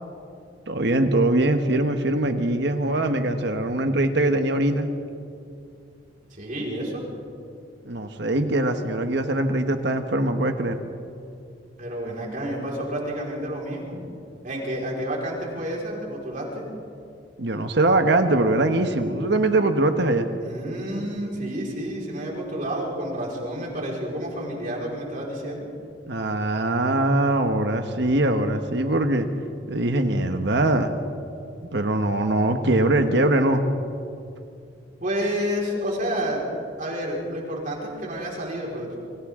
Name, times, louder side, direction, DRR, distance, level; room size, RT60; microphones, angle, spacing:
voice 1, 0.7-4.9 7.8-10.8 17.4-20.3 26.1-29.3 29.7-30.9 31.7-33.6, right 2 dB, 65° right, 6 dB, 1.2 m, -22 dB
voice 2, 6.3-7.0 11.8-14.0 14.4-16.6 20.4-25.7 35.0-36.4 36.8-39.0, equal, 45° right, -3 dB, 4.9 m, -30 dB
29.0 x 24.5 x 3.8 m, 2.5 s
head